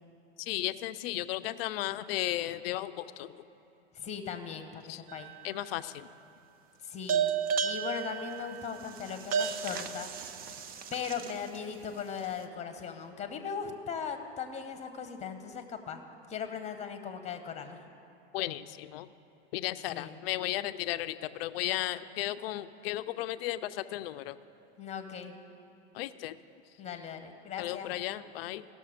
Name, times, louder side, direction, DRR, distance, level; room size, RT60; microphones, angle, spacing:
voice 1, 0.4-3.3 4.9-5.0 5.4-6.1 18.3-19.1 19.5-24.4 25.9-26.4 27.6-28.7, left 15 dB, 60° left, 13 dB, 0.5 m, -35 dB
voice 2, 3.9-5.3 6.8-7.3 7.6-10.1 10.9-16.0 16.3-17.9 19.9-20.2 24.8-25.3 26.8-27.9, left 7 dB, 20° left, 7 dB, 1.0 m, -38 dB
sound 1, 5.1-5.7 7.1-11.6, right 7 dB, 25° right, 0.5 m, -33 dB
17.0 x 6.7 x 5.0 m, 3.0 s
hypercardioid pair, 110°, 34 cm